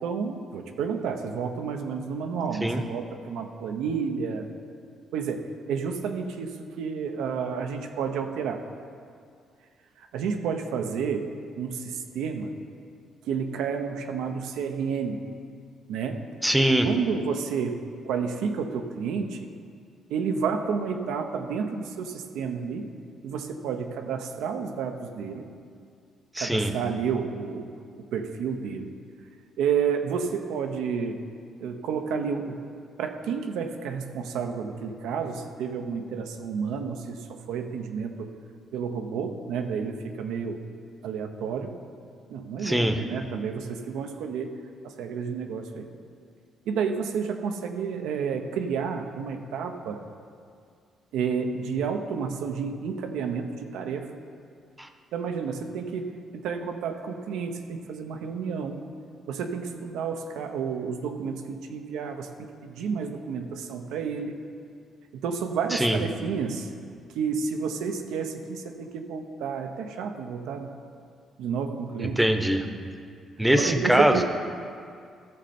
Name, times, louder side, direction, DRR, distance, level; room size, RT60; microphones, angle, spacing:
voice 1, 0.0-4.5 5.1-8.6 10.0-11.3 11.6-12.5 13.3-15.2 15.9-16.2 16.8-19.5 20.1-22.9 23.2-25.5 26.4-27.7 28.1-28.9 29.6-31.2 31.6-32.6 33.0-38.3 38.7-40.6 41.0-41.7 42.3-44.5 45.0-45.9 46.7-50.0 51.1-54.1 55.1-58.9 59.3-64.3 65.1-66.7 67.1-70.7 71.4-72.2 73.5-74.2, right 6 dB, 90° right, 5 dB, 0.8 m, -30 dB
voice 2, 16.4-16.9 26.3-26.7 42.6-43.0 54.8-54.9 65.7-66.0 72.0-72.7 73.4-74.2, right 1 dB, 5° right, 6 dB, 0.8 m, -22 dB
14.0 x 6.6 x 4.3 m, 2.3 s
cardioid pair, 90°, 0 cm